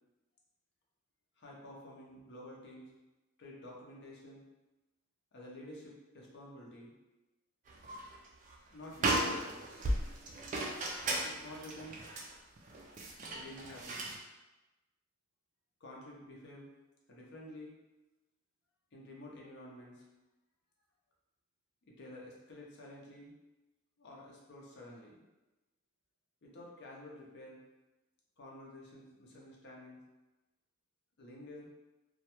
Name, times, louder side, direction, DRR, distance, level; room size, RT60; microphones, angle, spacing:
voice 1, 1.4-2.9 3.4-4.4 5.3-6.9 8.7-9.6 11.2-12.0 13.3-14.0 15.8-16.7 17.1-17.8 18.9-20.1 21.9-23.3 24.0-25.2 26.4-27.6 28.4-30.0 31.2-31.7, left 1 dB, 55° left, -3 dB, 0.6 m, -50 dB
sound 1, 7.7-8.2 8.5-8.6 8.9-14.2, right 1 dB, 35° right, 0.3 m, -36 dB
2.2 x 2.1 x 2.9 m, 1.1 s
head